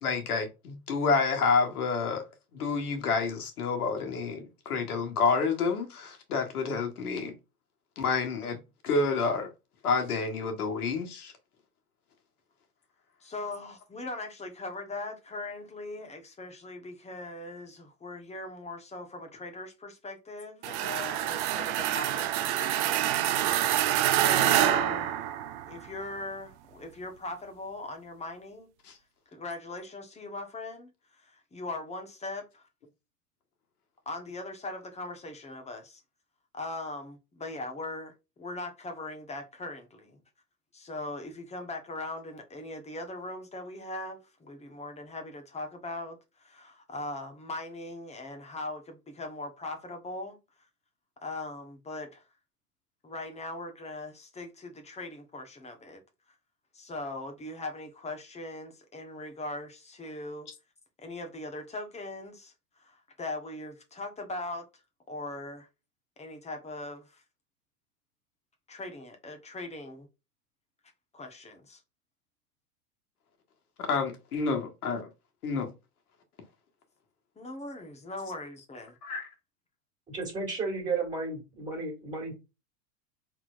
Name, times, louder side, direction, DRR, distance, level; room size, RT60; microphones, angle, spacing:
voice 1, 0.0-2.2 2.5-7.3 8.0-8.6 8.8-9.5 9.8-11.3 28.8-28.9 73.8-75.1 75.4-75.7 79.0-79.3, left 4 dB, 70° left, 1.7 m, -29 dB
voice 2, 13.2-23.0 24.0-25.3 25.7-28.7 29.3-32.7 34.0-36.0 36.5-40.2 40.7-50.4 51.2-52.2 53.0-56.0 56.7-60.5 61.0-62.5 62.8-64.7 65.1-65.7 66.2-67.2 68.7-70.1 71.1-71.8 77.3-79.0, left 2 dB, 15° left, 1.4 m, -40 dB
sound 1, 20.6-25.9, right 12 dB, 50° right, 0.7 m, -26 dB
voice 3, 80.1-82.3, right 3 dB, 15° right, 2.4 m, -33 dB
4.4 x 3.9 x 2.6 m
hypercardioid pair, 95°, 45 cm